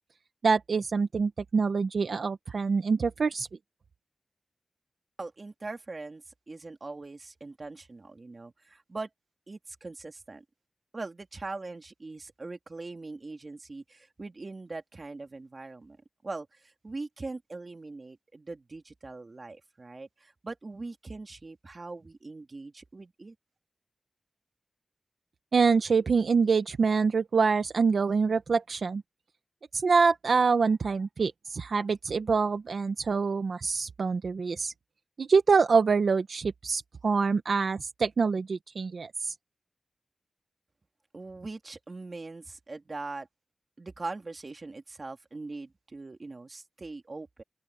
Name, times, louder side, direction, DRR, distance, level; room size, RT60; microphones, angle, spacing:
voice 1, 0.4-3.5 25.5-29.0 29.7-34.7 35.2-39.3, right 5 dB, 80° right, 0.9 m, -25 dB
voice 2, 5.2-9.1 9.5-10.4 10.9-16.0 16.2-23.3 41.1-43.3 43.8-47.4, right 3 dB, 45° right, 2.7 m, -41 dB
open air
wide cardioid pair, 75°, 0 cm